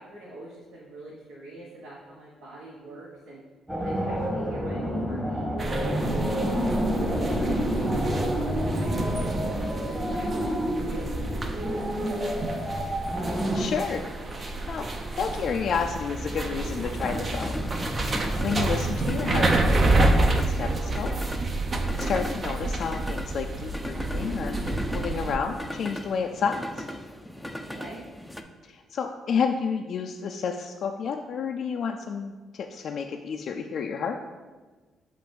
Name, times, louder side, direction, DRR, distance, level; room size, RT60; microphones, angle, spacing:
voice 1, 0.0-3.4 3.7-11.4 11.8-12.6 27.5-28.0, right 1 dB, 75° right, -5 dB, 1.2 m, -45 dB
sound 1, 3.7-13.6, equal, 15° right, 1.4 m, -28 dB
sound 2, 5.6-25.4, right 2 dB, 35° right, 0.6 m, -29 dB
sound 3, 9.9-28.4, left 1 dB, 5° left, 0.4 m, -38 dB
voice 2, 13.5-14.0 14.4-14.9 15.2-17.9 18.4-21.1 22.0-24.6 24.9-26.9 28.6-34.2, left 6 dB, 60° left, 3 dB, 0.3 m, -30 dB
7.5 x 2.5 x 5.2 m, 1.3 s
cardioid pair, 90°, 0 cm